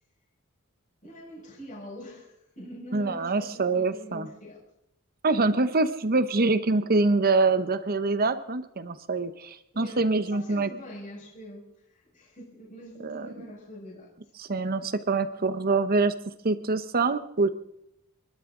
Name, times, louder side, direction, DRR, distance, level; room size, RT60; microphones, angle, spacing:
voice 1, 1.0-4.6 9.7-14.1, equal, 35° left, -3 dB, 5.3 m, -44 dB
voice 2, 2.9-4.3 5.2-10.7 13.0-13.5 14.4-16.1 16.4-17.5, right 3 dB, 45° right, 12 dB, 1.0 m, -25 dB
29.0 x 12.0 x 3.8 m, 0.79 s
head